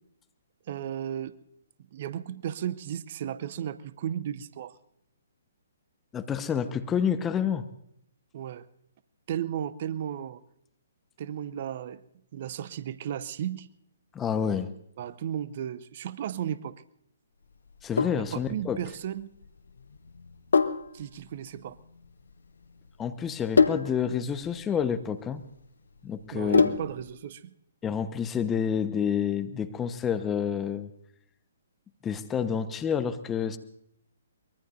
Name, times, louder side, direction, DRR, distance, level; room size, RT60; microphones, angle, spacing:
voice 1, 0.7-1.3 1.9-4.8 8.3-8.7 9.3-10.4 11.2-12.0 12.3-13.7 15.0-16.8 18.2-19.3 20.9-21.8 26.3-27.5, right 10 dB, 45° right, 15 dB, 0.7 m, -34 dB
voice 2, 6.1-7.7 14.1-14.7 17.8-18.8 23.0-25.4 26.0-26.8 27.8-30.9 32.0-33.6, left 7 dB, 15° left, 10 dB, 1.0 m, -29 dB
Sink (filling or washing), 17.7-27.1, left 5 dB, 70° left, 0.9 m, -28 dB
23.5 x 22.0 x 2.6 m, 0.72 s
figure-of-eight pair, 130°, 0 cm